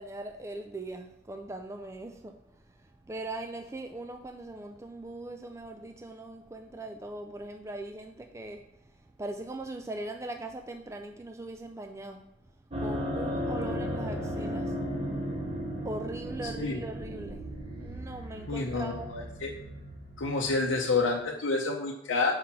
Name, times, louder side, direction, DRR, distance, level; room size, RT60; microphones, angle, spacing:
voice 1, 0.0-12.2 12.8-14.8 15.8-17.4 17.8-19.3, right 2 dB, 15° right, 5 dB, 0.4 m, -40 dB
sound 1, 12.7-21.0, equal, 30° right, 1.5 m, -35 dB
voice 2, 16.4-16.8 18.5-19.5 20.2-22.3, left 3 dB, 90° left, -1 dB, 0.7 m, -29 dB
5.7 x 4.8 x 5.8 m, 0.83 s
head